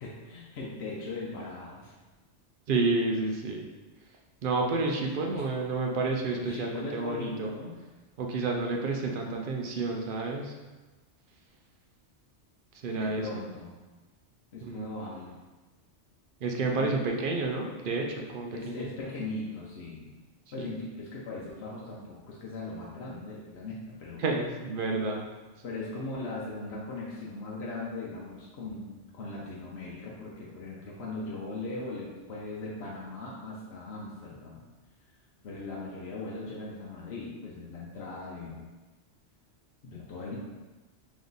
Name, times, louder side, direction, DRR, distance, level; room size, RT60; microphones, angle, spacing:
voice 1, 0.0-1.9 6.3-7.8 13.0-13.8 14.5-15.4 16.8-17.0 18.5-20.1 20.5-24.2 25.6-34.6 35.4-38.6 39.8-40.4, left 3 dB, 65° left, -5 dB, 0.9 m, -39 dB
voice 2, 2.7-3.6 4.4-7.5 8.2-10.5 12.8-13.5 14.6-14.9 16.4-18.9 20.6-20.7 24.2-25.3, right 3 dB, 60° right, 1 dB, 0.6 m, -30 dB
3.4 x 3.0 x 3.9 m, 1.2 s
omnidirectional pair, 1.2 m